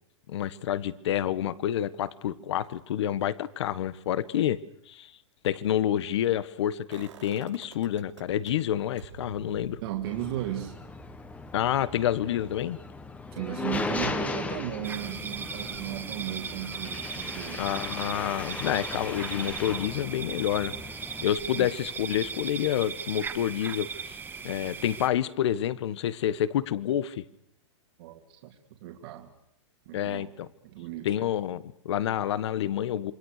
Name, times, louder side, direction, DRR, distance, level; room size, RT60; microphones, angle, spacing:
voice 1, 0.3-4.6 4.9-5.1 5.4-9.8 11.5-12.8 17.6-20.7 21.2-24.2 24.4-27.2 29.9-30.5 31.0-33.1, left 11 dB, 65° left, 16 dB, 1.5 m, -28 dB
sound 1, 6.9-8.5 9.0-14.8 15.1-15.2, right 9 dB, 80° right, 6.8 m, -51 dB
voice 2, 9.8-10.8 13.3-17.6 21.6-21.7 28.0-29.3 29.9-30.3 30.6-31.3, right 12 dB, 55° right, 3 dB, 3.0 m, -36 dB
sound 2, 10.0-21.2, left 3 dB, 10° left, 1.5 m, -37 dB
sound 3, 14.8-25.1, right 5 dB, 15° right, 1.8 m, -38 dB
27.5 x 23.0 x 6.7 m, 0.77 s
hypercardioid pair, 145°, 15 cm